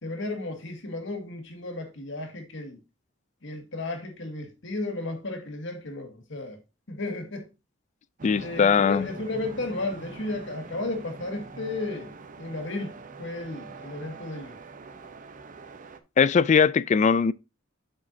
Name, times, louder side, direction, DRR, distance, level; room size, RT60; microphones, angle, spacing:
voice 1, 0.0-2.8 3.4-6.6 6.9-7.5 8.4-14.6, left 2 dB, 65° left, 1.9 m, -34 dB
voice 2, 8.2-9.1 16.2-17.3, left 6 dB, 35° left, 0.3 m, -20 dB
sound 1, 8.2-16.0, right 4 dB, 40° right, 0.7 m, -44 dB
7.9 x 7.1 x 2.7 m
head